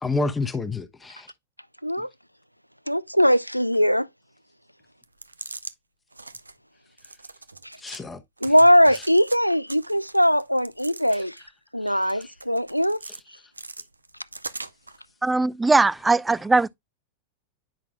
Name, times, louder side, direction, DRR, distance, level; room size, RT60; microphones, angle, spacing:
voice 1, 0.0-1.3 7.8-8.2 11.9-12.2, left 3 dB, 15° left, 0.9 m, -29 dB
voice 2, 2.9-4.1 7.6-7.7 8.4-11.4 11.7-13.0, equal, 90° left, 0.3 m, -20 dB
sound 1, 5.0-5.7 6.1-6.5 7.0-8.0 8.4-9.4 9.7-11.5 11.9-13.2 13.5-15.0, right 3 dB, 80° right, 0.5 m, -41 dB
voice 3, 15.2-16.7, right 3 dB, 10° right, 0.4 m, -20 dB
10.0 x 5.9 x 2.2 m
figure-of-eight pair, 90°, 0 cm